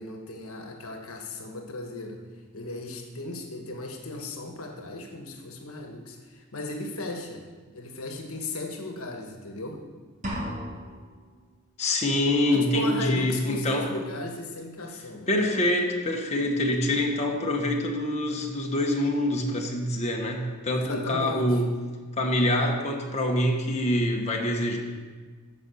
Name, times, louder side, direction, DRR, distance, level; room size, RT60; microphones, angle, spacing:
voice 1, 0.0-2.2 2.5-7.5 7.7-9.8 12.5-15.3 20.7-21.6, left 2 dB, 70° left, 3 dB, 1.4 m, -36 dB
sound 1, 10.2-11.2, equal, 35° right, 2.1 m, -34 dB
voice 2, 11.8-14.0 15.3-21.7 22.2-24.8, left 1 dB, 30° left, 1 dB, 1.3 m, -25 dB
14.5 x 5.5 x 7.0 m, 1.4 s
head